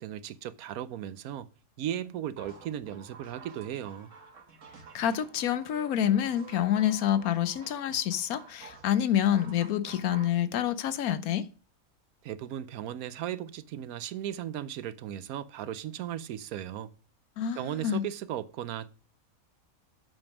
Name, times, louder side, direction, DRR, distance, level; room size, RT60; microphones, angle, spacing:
voice 1, 0.0-1.5 1.8-4.1 12.2-16.9 17.5-18.9, right 11 dB, 85° right, 1.1 m, -36 dB
sound 1, 2.4-10.4, right 6 dB, 60° right, 1.7 m, -51 dB
voice 2, 4.9-11.4 17.4-18.0, left 10 dB, 85° left, 1.2 m, -27 dB
7.8 x 5.2 x 6.0 m
omnidirectional pair, 1.5 m